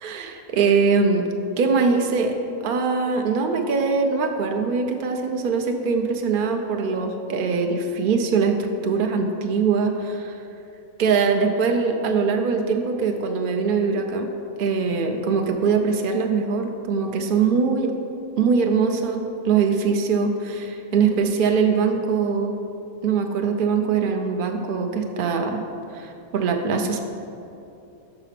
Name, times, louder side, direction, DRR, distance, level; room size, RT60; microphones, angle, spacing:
voice 1, 0.0-1.3 1.6-2.3 2.6-10.4 11.0-14.3 14.6-17.9 18.4-22.6 23.0-25.6 25.9-27.0, right 5 dB, 85° right, 4 dB, 0.4 m, -22 dB
5.7 x 4.9 x 5.7 m, 2.8 s
omnidirectional pair, 1.5 m